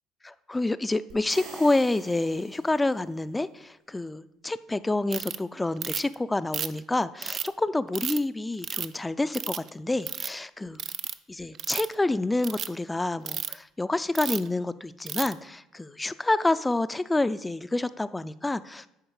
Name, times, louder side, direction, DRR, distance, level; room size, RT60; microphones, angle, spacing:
voice 1, 0.2-10.8 11.3-18.9, left 2 dB, 15° left, 14 dB, 0.4 m, -28 dB
sound 1, 1.1-3.2, right 3 dB, 75° right, 3.3 m, -46 dB
Ratchet pawl, 5.1-5.4 5.8-6.1 6.5-7.5 7.9-8.2 8.6-9.0 9.3-9.7 10.0-10.3 10.8-11.1 11.5-11.9 12.4-12.7 13.3-13.5 14.1-14.5 15.1-15.3, right 8 dB, 50° right, 0.4 m, -32 dB
10.0 x 4.3 x 4.8 m, 0.87 s
hypercardioid pair, 60°, 0 cm